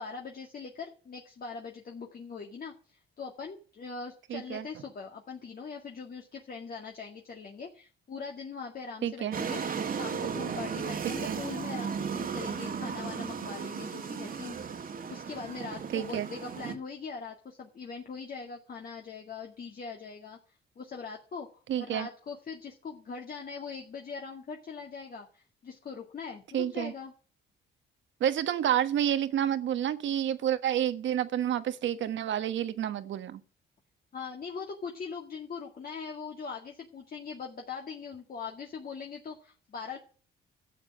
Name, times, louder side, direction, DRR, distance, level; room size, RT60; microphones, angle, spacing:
voice 1, 0.0-9.6 10.0-14.6 15.1-20.4 20.8-27.1 34.1-40.0, left 5 dB, 50° left, 2.1 m, -41 dB
voice 2, 4.3-4.6 9.0-9.4 11.0-11.4 15.9-16.3 21.7-22.1 26.5-26.9 28.2-33.4, right 10 dB, 70° right, 1.3 m, -29 dB
sound 1, 9.3-16.7, right 6 dB, 45° right, 1.8 m, -35 dB
12.5 x 7.4 x 7.6 m
cardioid pair, 90°, 20 cm